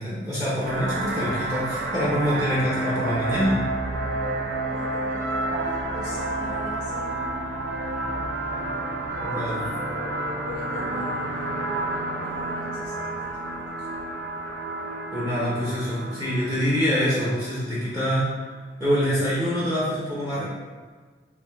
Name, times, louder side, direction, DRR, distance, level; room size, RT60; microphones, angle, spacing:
voice 1, 0.0-3.6 9.2-9.7 15.1-18.3 18.8-20.4, equal, 15° right, -9 dB, 0.7 m, -25 dB
sound 1, 0.6-17.6, right 2 dB, 50° right, 0.5 m, -30 dB
voice 2, 4.7-7.1 9.3-10.1 10.4-11.3 12.1-14.0, left 2 dB, 70° left, -3 dB, 0.5 m, -42 dB
3.4 x 2.6 x 3.4 m, 1.5 s
head